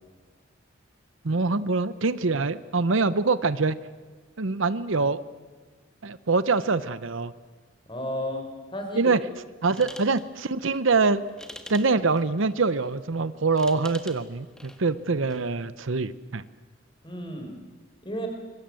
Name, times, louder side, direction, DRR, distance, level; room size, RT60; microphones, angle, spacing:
voice 1, 1.2-3.8 4.4-5.2 6.0-7.3 8.9-9.2 9.6-11.2 11.7-16.4, right 4 dB, 70° right, 14 dB, 0.8 m, -24 dB
voice 2, 7.9-8.5 8.7-9.1 9.7-9.9 17.0-17.5 18.0-18.3, equal, 25° left, 4 dB, 4.8 m, -32 dB
sound 1, 9.6-15.5, equal, 5° left, 1.6 m, -48 dB
26.0 x 23.5 x 7.7 m, 1.4 s
head